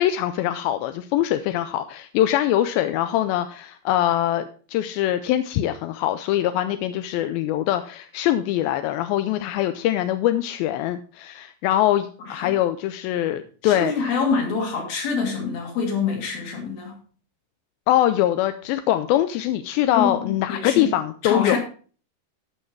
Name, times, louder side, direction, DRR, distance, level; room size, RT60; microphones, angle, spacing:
voice 1, 0.0-13.9 17.9-21.6, left 12 dB, 85° left, 10 dB, 2.1 m, -23 dB
voice 2, 12.2-12.6 13.6-17.0 20.0-21.0 21.2-21.6, left 5 dB, 60° left, 0 dB, 4.3 m, -26 dB
13.5 x 5.6 x 4.6 m, 0.40 s
omnidirectional pair, 4.7 m